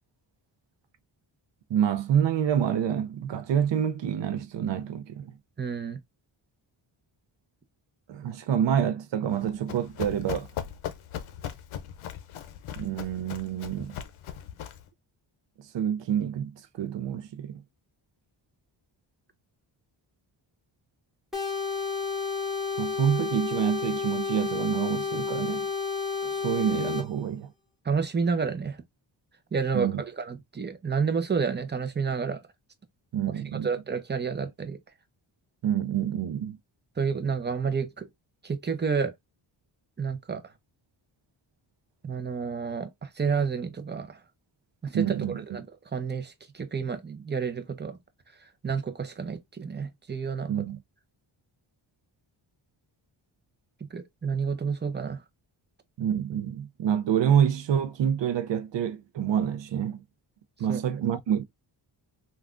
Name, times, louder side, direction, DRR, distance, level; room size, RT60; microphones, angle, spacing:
voice 1, 1.7-5.3 8.1-10.5 12.8-14.0 15.7-17.6 22.8-25.7 26.2-27.5 29.7-30.0 33.1-33.7 35.6-36.6 44.9-45.4 50.5-50.8 56.0-60.0 60.6-61.4, right 9 dB, 65° right, 0.5 m, -27 dB
voice 2, 5.6-6.0 27.8-28.8 29.5-32.4 33.6-34.8 37.0-38.1 38.4-39.1 40.0-40.4 42.0-44.2 44.8-45.7 45.9-48.0 48.6-50.7 53.9-55.2 60.7-60.8, right 5 dB, 20° right, 0.6 m, -30 dB
Run, 9.3-14.9, left 10 dB, 80° left, 0.6 m, -39 dB
sound 1, 21.3-27.1, left 5 dB, ahead, 1.2 m, -31 dB
3.4 x 2.3 x 2.4 m
cardioid pair, 85°, 49 cm